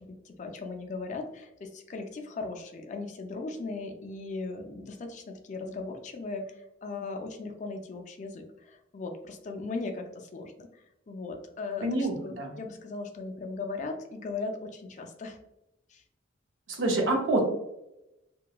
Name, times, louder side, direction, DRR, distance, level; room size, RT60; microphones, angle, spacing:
voice 1, 0.0-15.4 15.9-16.0, left 3 dB, 35° left, 4 dB, 0.3 m, -38 dB
voice 2, 11.8-12.6 16.7-17.4, right 2 dB, 80° right, 1 dB, 0.7 m, -27 dB
2.9 x 2.2 x 2.3 m, 0.88 s
head